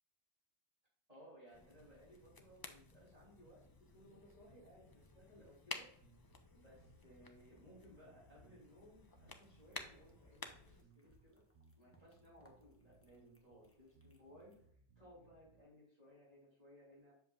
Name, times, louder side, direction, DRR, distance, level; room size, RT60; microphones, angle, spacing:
voice 1, 1.1-5.9 6.5-11.4 11.7-17.1, equal, 35° right, -6 dB, 3.2 m, -62 dB
sound 1, 1.5-10.8, left 3 dB, 30° left, 0.5 m, -54 dB
sound 2, 6.0-15.6, right 4 dB, 70° right, 1.1 m, -69 dB
sound 3, 9.4-14.7, equal, 15° left, 1.0 m, -74 dB
7.7 x 6.7 x 2.4 m, 0.65 s
omnidirectional pair, 1.1 m